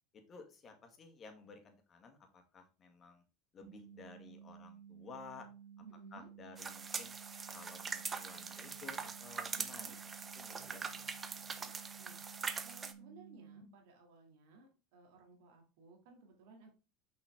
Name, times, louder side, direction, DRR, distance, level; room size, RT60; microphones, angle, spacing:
voice 1, 0.1-3.2 3.5-5.5 6.1-7.2 7.5-9.9 10.4-11.1, left 4 dB, 35° left, 5 dB, 1.9 m, -54 dB
sound 1, 3.6-13.6, right 8 dB, 5° left, 2.1 m, -55 dB
voice 2, 5.8-6.3 9.6-10.0 12.0-12.2 12.6-16.7, right 3 dB, 65° right, 2 dB, 2.2 m, -59 dB
sound 2, 6.6-12.9, right 5 dB, 25° right, 0.8 m, -43 dB
6.1 x 5.5 x 3.6 m, 0.31 s
hypercardioid pair, 90°, 0 cm